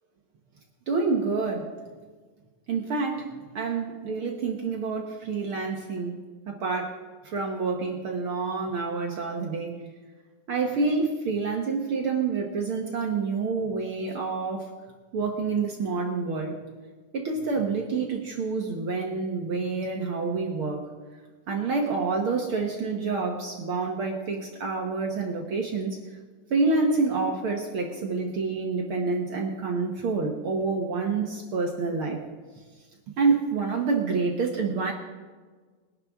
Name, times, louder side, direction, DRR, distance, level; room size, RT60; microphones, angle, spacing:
voice 1, 0.9-1.7 2.7-6.2 6.5-7.0 7.2-9.7 10.5-14.7 15.1-16.6 17.1-20.9 21.5-26.0 26.5-32.2 33.2-34.9, right 4 dB, 55° right, 1 dB, 1.7 m, -28 dB
21.5 x 11.0 x 3.6 m, 1.4 s
omnidirectional pair, 3.6 m